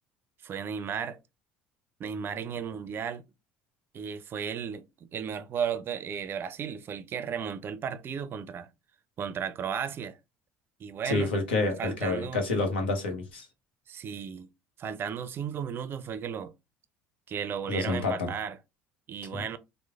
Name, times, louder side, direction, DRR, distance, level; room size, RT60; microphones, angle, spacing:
voice 1, 0.4-1.2 2.0-3.2 3.9-4.8 5.1-8.7 9.2-10.2 10.8-11.3 11.8-12.4 13.9-14.5 14.8-16.5 17.3-18.6 19.1-19.6, right 7 dB, 45° right, 0.4 m, -34 dB
voice 2, 11.0-13.5 17.7-18.3 19.3-19.4, left 3 dB, 85° left, 0.8 m, -28 dB
3.0 x 2.0 x 2.4 m
hypercardioid pair, 65°, 6 cm